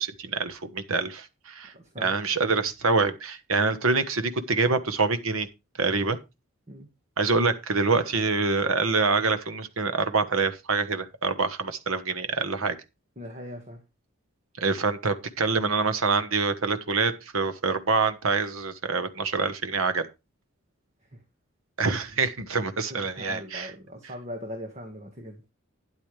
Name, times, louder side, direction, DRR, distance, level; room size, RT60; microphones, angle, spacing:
voice 1, 0.0-1.7 2.0-5.5 5.8-6.2 7.2-12.8 14.6-20.1 21.8-23.7, right 4 dB, 75° right, 1.2 m, -26 dB
voice 2, 1.7-2.1 6.7-6.9 13.2-13.8 22.9-25.4, equal, 30° right, 1.7 m, -40 dB
12.5 x 9.6 x 3.3 m
head